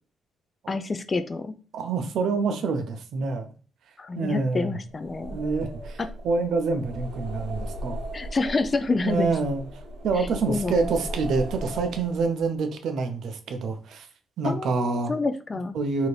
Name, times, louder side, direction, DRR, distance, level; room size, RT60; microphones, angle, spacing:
voice 1, 0.7-1.5 4.0-5.4 8.1-9.3 10.5-10.8 14.4-15.8, left 3 dB, 30° left, 10 dB, 0.3 m, -27 dB
voice 2, 1.7-3.5 4.2-4.8 5.3-8.0 9.0-9.6 10.0-14.1 14.4-15.1 15.7-16.1, right 4 dB, 70° right, 7 dB, 0.5 m, -27 dB
sound 1, 4.9-12.5, right 1 dB, 90° right, 0.8 m, -37 dB
2.7 x 2.5 x 3.1 m, 0.38 s
cardioid pair, 90°, 0 cm